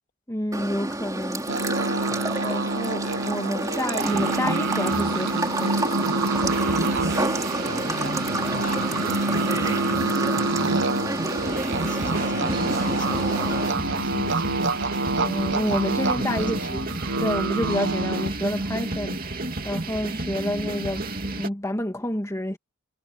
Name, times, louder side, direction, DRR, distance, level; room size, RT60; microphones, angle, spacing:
voice 1, 0.3-1.5 2.4-6.1 15.2-16.8 17.2-22.6, left 1 dB, 15° left, 2.1 m, -29 dB
sound 1, 0.5-13.7, right 2 dB, 15° right, 3.0 m, -29 dB
sound 2, 1.5-18.3, right 2 dB, 60° right, 1.1 m, -27 dB
voice 2, 2.1-2.4 7.7-14.6 16.2-17.3 17.7-17.8, left 2 dB, 40° left, 2.4 m, -39 dB
sound 3, 4.0-21.5, right 2 dB, 45° right, 2.7 m, -32 dB
head